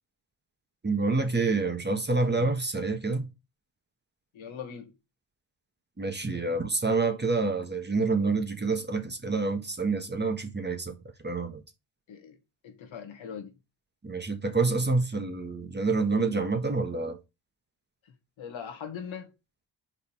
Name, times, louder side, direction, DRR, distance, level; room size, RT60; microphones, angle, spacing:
voice 1, 0.8-3.3 6.0-10.9 11.2-11.6 14.0-17.2, right 3 dB, 20° right, 1.5 m, -27 dB
voice 2, 4.3-4.9 12.1-12.4 12.6-13.5 18.1-19.3, left 7 dB, 90° left, 1.9 m, -41 dB
5.3 x 4.9 x 5.9 m
cardioid pair, 90°, 46 cm